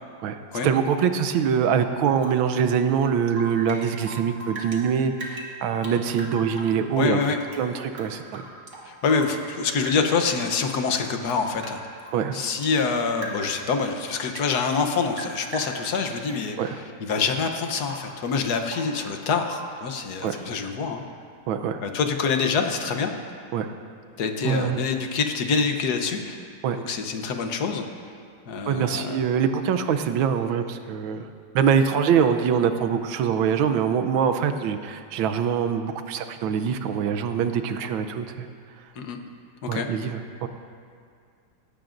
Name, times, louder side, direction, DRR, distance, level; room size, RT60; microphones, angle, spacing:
voice 1, 0.2-7.2 7.6-8.5 12.1-12.4 16.6-16.8 20.2-20.4 21.5-21.8 23.5-23.7 24.4-24.8 26.6-26.8 28.7-31.3 31.5-38.5 39.7-40.5, right 7 dB, 90° right, 9 dB, 1.5 m, -24 dB
Rain / Drip, 2.2-4.8 5.1-7.6 7.9-9.6 9.8-10.5 10.8-12.8 13.2-13.6 13.9-16.5 17.0-17.4 17.8-18.1 18.4-19.0 19.4-19.8 20.3-20.5, right 1 dB, 40° right, 1.9 m, -40 dB
voice 2, 7.0-7.4 8.9-11.8 12.3-21.0 21.8-23.1 24.2-26.4 26.7-27.8 28.5-29.2 39.0-39.2 39.6-39.9, left 5 dB, 60° left, 5 dB, 1.4 m, -26 dB
17.5 x 16.5 x 2.6 m, 2.2 s
omnidirectional pair, 2.1 m